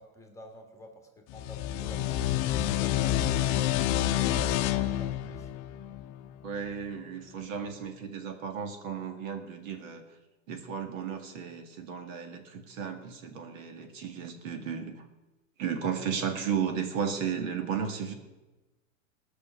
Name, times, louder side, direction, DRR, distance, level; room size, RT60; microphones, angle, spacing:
voice 1, 0.0-2.3 2.7-3.6 4.0-5.5, equal, 5° left, 3 dB, 1.6 m, -47 dB
sound 1, 1.3-6.6, left 12 dB, 40° left, 0.6 m, -28 dB
voice 2, 6.4-10.0 10.5-15.0 15.6-18.1, right 7 dB, 70° right, 6 dB, 1.9 m, -34 dB
18.0 x 6.3 x 6.7 m, 1.1 s
supercardioid pair, 135°, 40 cm